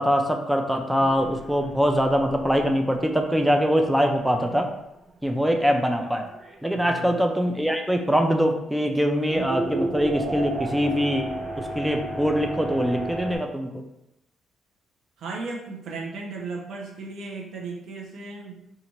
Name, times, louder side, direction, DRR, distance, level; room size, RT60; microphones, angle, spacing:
voice 1, 0.0-4.7 5.2-6.3 6.6-11.3 11.6-13.8, equal, 5° right, 4 dB, 0.5 m, -23 dB
sound 1, 1.0-4.7 5.1-5.2 5.6-7.2 7.8-7.9 9.3-13.4, right 2 dB, 25° right, 0.8 m, -34 dB
voice 2, 6.8-7.2 15.2-18.6, right 3 dB, 70° right, 0 dB, 0.8 m, -35 dB
2.8 x 2.5 x 4.3 m, 0.85 s
cardioid pair, 90°, 0 cm